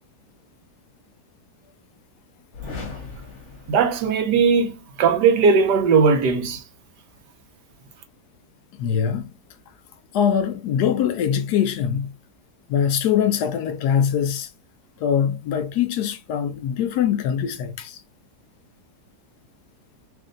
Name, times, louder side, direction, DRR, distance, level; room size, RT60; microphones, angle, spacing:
sound 1, 2.5-4.5, left 4 dB, 50° left, 1.1 m, -38 dB
voice 1, 3.7-6.6, right 5 dB, 80° right, 1.4 m, -18 dB
voice 2, 8.8-9.3 10.1-12.1 12.7-14.5 15.0-18.0, left 8 dB, 75° left, 1.1 m, -22 dB
3.4 x 2.6 x 3.8 m
omnidirectional pair, 1.8 m